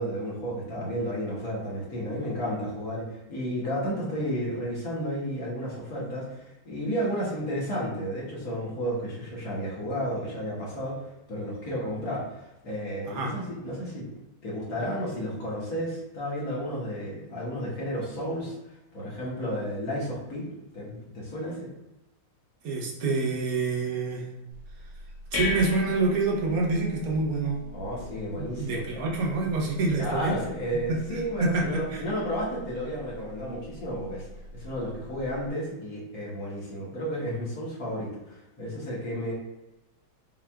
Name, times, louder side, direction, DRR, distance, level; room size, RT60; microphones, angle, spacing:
voice 1, 0.0-11.0 11.3-14.1 14.4-18.6 18.9-21.7 27.7-29.0 30.0-34.3 34.5-39.3, equal, 55° left, -6 dB, 1.4 m, -32 dB
voice 2, 22.6-24.3 25.3-27.6 28.4-30.3 30.9-32.0, right 3 dB, 60° right, -2 dB, 1.0 m, -27 dB
sound 1, 24.5-35.5, left 3 dB, 75° left, 0.9 m, -40 dB
5.5 x 2.3 x 2.3 m, 0.98 s
omnidirectional pair, 2.2 m